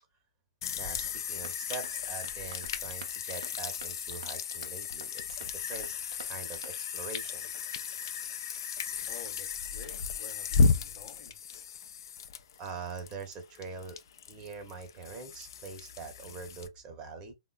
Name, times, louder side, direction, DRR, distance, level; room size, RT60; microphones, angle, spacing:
sound 1, 0.6-16.7, left 5 dB, 55° left, 0.4 m, -34 dB
voice 1, 0.8-5.9 6.2-7.5 12.6-14.0 14.3-17.3, right 4 dB, 30° right, 0.8 m, -43 dB
sound 2, 1.4-6.9, right 5 dB, 70° right, 0.5 m, -52 dB
voice 2, 9.1-11.4, left 4 dB, 30° left, 0.9 m, -50 dB
3.5 x 2.2 x 2.3 m
figure-of-eight pair, 115°, 3 cm